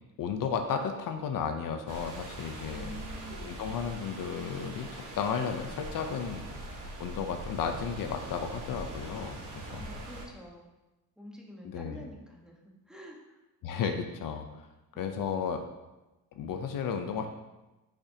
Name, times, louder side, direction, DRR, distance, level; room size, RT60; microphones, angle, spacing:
voice 1, 0.2-2.8 3.3-6.4 7.0-9.8 11.6-12.0 13.6-14.7 15.0-15.6 16.3-17.3, left 6 dB, 65° left, 6 dB, 0.8 m, -33 dB
sound 1, 1.9-10.2, right 1 dB, 55° right, 2.1 m, -42 dB
voice 2, 2.7-3.6 9.5-10.7 11.2-13.4 14.9-15.3, equal, ahead, -2 dB, 1.3 m, -48 dB
10.0 x 5.9 x 2.9 m, 1.0 s
cardioid pair, 135°, 36 cm